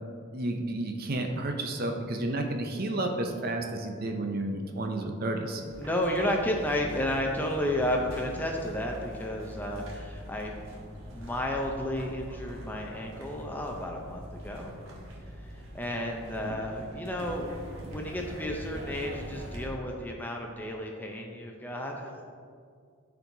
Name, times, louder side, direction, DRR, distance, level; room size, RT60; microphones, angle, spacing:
voice 1, 0.3-5.6 16.4-16.6, right 2 dB, 45° right, 4 dB, 0.5 m, -31 dB
sound 1, 5.7-19.7, equal, 65° right, 1.4 m, -43 dB
voice 2, 5.8-10.6 11.0-14.7 15.4-22.2, left 1 dB, 10° left, 1 dB, 0.5 m, -32 dB
12.0 x 4.5 x 2.7 m, 2.2 s
head